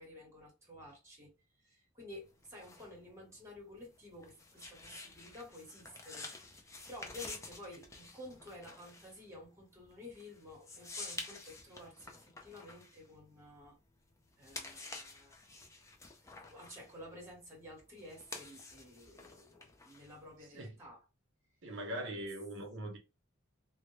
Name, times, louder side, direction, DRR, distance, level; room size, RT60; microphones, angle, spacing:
voice 1, 0.0-1.3 1.6-6.6 6.9-13.8 14.4-15.4 16.4-21.0, left 1 dB, 15° right, 1.0 m, -52 dB
sound 1, 2.1-13.9 14.3-20.4, left 3 dB, 15° left, 0.3 m, -50 dB
voice 2, 21.6-23.0, right 1 dB, 60° right, 0.6 m, -41 dB
2.1 x 2.1 x 2.9 m
head